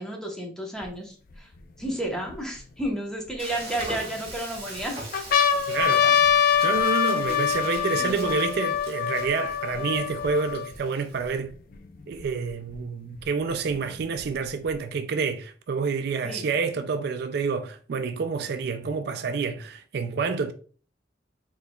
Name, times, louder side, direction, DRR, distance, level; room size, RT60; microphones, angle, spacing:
voice 1, 0.0-1.5 1.8-5.0 6.0-6.1 7.3-8.3 16.2-16.4, right 1 dB, 5° left, 1.0 m, -32 dB
sound 1, 0.8-0.9 1.6-2.8 3.5-4.3 4.8-4.9 5.1-10.8 11.5-11.6 11.7-12.7 13.7-14.7, left 8 dB, 55° left, 0.5 m, -24 dB
Frying (food), 3.4-11.4, right 2 dB, 35° right, 1.7 m, -42 dB
voice 2, 5.7-6.0 6.6-11.6 12.1-20.5, right 5 dB, 65° right, 0.4 m, -28 dB
4.1 x 3.9 x 2.3 m
head